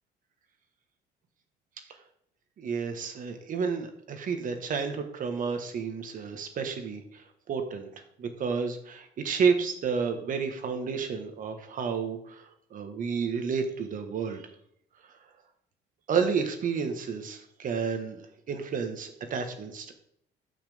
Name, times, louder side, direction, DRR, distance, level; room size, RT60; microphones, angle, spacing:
voice 1, 2.6-7.9 8.2-14.4 16.1-19.9, right 5 dB, 50° right, 6 dB, 1.6 m, -31 dB
13.0 x 5.9 x 3.6 m, 0.70 s
cardioid pair, 110°, 17 cm